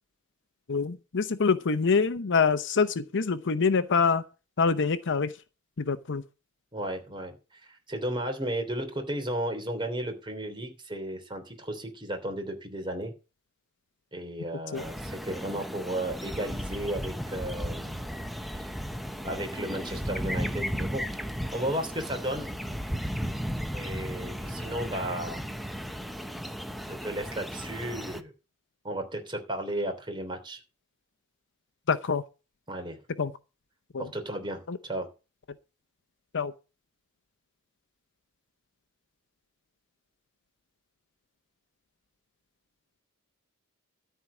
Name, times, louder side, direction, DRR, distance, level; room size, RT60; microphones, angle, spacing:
voice 1, 0.7-4.2 4.6-5.3 5.8-6.2 14.7-14.8 31.9-32.2 33.2-33.3 33.9-34.1 34.7-34.8 36.3-36.5, left 5 dB, 55° left, 0.7 m, -25 dB
voice 2, 6.7-13.1 14.1-18.0 18.6-18.7 19.2-21.0 21.5-22.5 23.7-25.5 26.9-28.3 28.8-30.6 32.7-33.0 34.0-35.1, right 1 dB, 20° right, 3.0 m, -34 dB
sound 1, 14.8-28.2, equal, ahead, 0.8 m, -35 dB
13.5 x 4.6 x 8.4 m
head